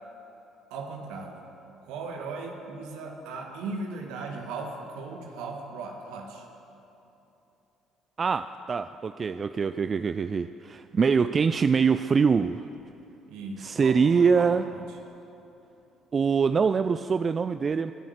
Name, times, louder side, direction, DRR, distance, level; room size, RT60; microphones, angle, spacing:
voice 1, 0.7-1.5 1.8-6.4 13.3-14.9, right 3 dB, 75° right, 2 dB, 1.8 m, -38 dB
voice 2, 8.2-12.7 13.6-14.7 16.1-17.9, right 5 dB, 40° right, 12 dB, 0.4 m, -24 dB
22.5 x 9.1 x 6.5 m, 3.0 s
hypercardioid pair, 60°, 0 cm